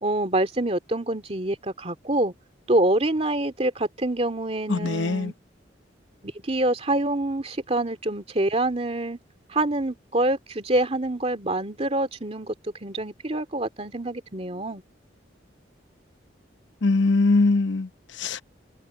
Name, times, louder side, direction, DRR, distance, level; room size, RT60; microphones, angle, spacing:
voice 1, 0.0-2.3 2.7-5.3 6.4-9.2 9.5-12.5 12.8-14.8, right 1 dB, 35° right, 2.5 m, -26 dB
voice 2, 4.7-5.3 16.8-18.4, left 3 dB, 80° left, 0.9 m, -22 dB
head